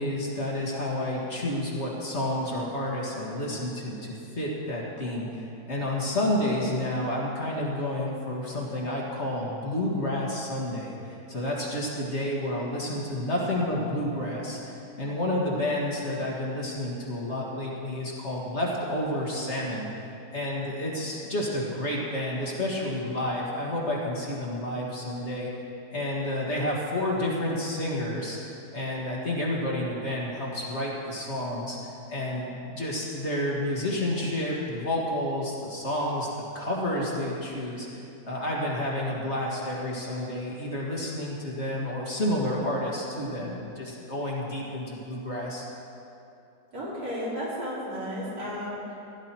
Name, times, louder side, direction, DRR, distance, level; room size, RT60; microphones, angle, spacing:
voice 1, 0.0-14.6 15.0-19.9 20.3-25.5 25.9-28.4 28.7-31.8 32.1-45.7, left 1 dB, 45° left, -4 dB, 2.0 m, -30 dB
voice 2, 46.7-48.9, equal, 65° right, -8 dB, 4.2 m, -33 dB
16.0 x 11.0 x 4.5 m, 2.8 s
omnidirectional pair, 1.7 m